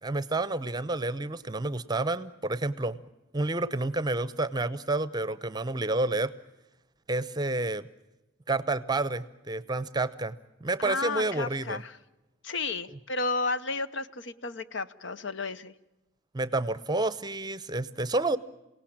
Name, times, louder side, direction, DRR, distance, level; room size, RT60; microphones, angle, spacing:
voice 1, 0.0-3.0 3.3-6.3 7.1-7.9 8.5-11.8 16.3-18.4, right 2 dB, 20° right, 16 dB, 0.8 m, -29 dB
voice 2, 10.8-12.0 12.4-15.7, left 3 dB, 65° left, 13 dB, 0.9 m, -32 dB
27.5 x 18.0 x 8.7 m, 1.0 s
head